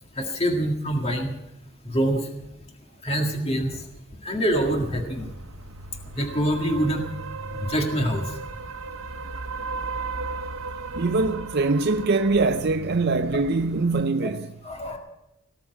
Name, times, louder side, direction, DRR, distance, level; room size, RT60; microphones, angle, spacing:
voice 1, 0.2-1.3 1.9-2.2 3.0-3.7 4.2-5.3 6.2-7.0 7.7-8.2 13.3-13.4 14.2-14.3 14.6-15.0, right 1 dB, 30° left, 1.9 m, -25 dB
sound 1, 4.5-14.1, right 3 dB, 85° right, 1.1 m, -36 dB
voice 2, 10.9-14.6, right 3 dB, 50° right, 0.5 m, -23 dB
18.5 x 7.1 x 9.7 m
head